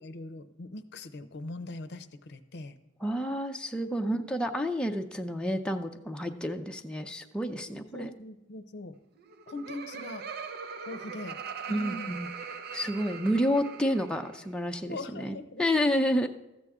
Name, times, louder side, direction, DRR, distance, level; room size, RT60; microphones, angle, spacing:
voice 1, 0.0-2.8 3.9-4.0 7.7-9.0 9.5-10.3 10.8-12.2 14.9-15.6, left 2 dB, 60° left, 10 dB, 0.6 m, -41 dB
voice 2, 3.0-8.1 11.7-12.3 12.7-16.3, equal, 5° left, 3 dB, 0.5 m, -30 dB
Laughter, 9.2-14.4, right 6 dB, 50° right, 0.6 m, -41 dB
13.5 x 8.0 x 3.6 m, 0.98 s
head